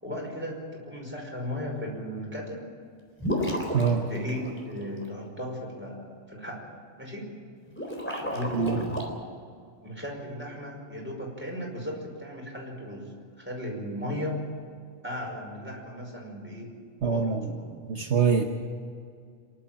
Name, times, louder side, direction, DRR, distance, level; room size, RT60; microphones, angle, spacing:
voice 1, 0.0-2.7 4.1-6.6 7.0-7.2 8.3-8.9 9.8-13.0 13.5-14.4 15.0-16.7 17.0-17.6, equal, 10° right, -1 dB, 5.3 m, -36 dB
sound 1, 3.2-5.0 7.7-9.1, equal, 10° left, 3.7 m, -32 dB
voice 2, 3.7-4.1 8.5-8.8 17.0-17.5 17.9-18.4, right 6 dB, 60° right, 3 dB, 1.4 m, -24 dB
27.5 x 11.5 x 8.9 m, 2.2 s
omnidirectional pair, 1.4 m